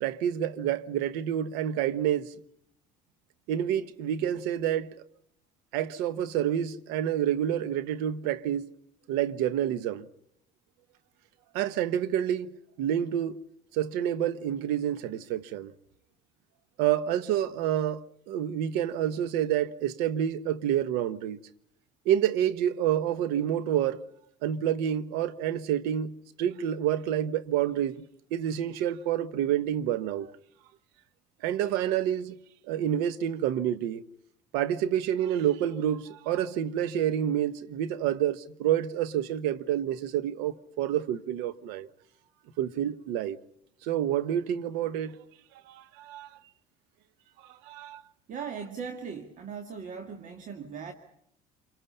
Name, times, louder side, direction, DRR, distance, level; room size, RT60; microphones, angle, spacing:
voice 1, 0.0-2.3 3.5-4.9 5.7-8.7 9.1-10.1 11.5-12.5 12.8-13.4 13.7-15.7 16.8-21.4 22.0-24.0 24.4-28.0 28.3-30.3 31.4-32.4 32.7-34.0 34.5-41.9 42.6-43.4 43.8-45.2 45.7-46.3 47.6-48.0, right 10 dB, 80° right, 1.1 m, -28 dB
voice 2, 48.3-50.9, right 6 dB, 50° right, 2.2 m, -38 dB
28.0 x 24.0 x 5.5 m
supercardioid pair, 95°, 16 cm